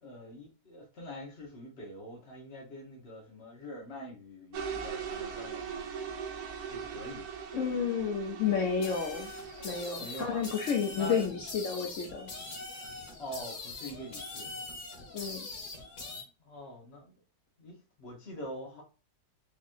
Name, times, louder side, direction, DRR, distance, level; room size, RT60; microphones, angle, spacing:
voice 1, 0.0-5.8 6.7-7.3 10.0-10.4 10.9-11.2 13.2-14.5 16.0-16.1 16.4-17.2 17.6-18.8, equal, 40° left, 1.3 m, -44 dB
sound 1, 4.5-11.3, right 7 dB, 70° right, 1.0 m, -41 dB
voice 2, 7.5-9.3 9.6-12.3 15.1-15.5, left 6 dB, 75° left, 0.7 m, -31 dB
sound 2, 8.8-16.2, left 3 dB, 55° left, 1.7 m, -43 dB
4.6 x 3.0 x 2.5 m
omnidirectional pair, 2.0 m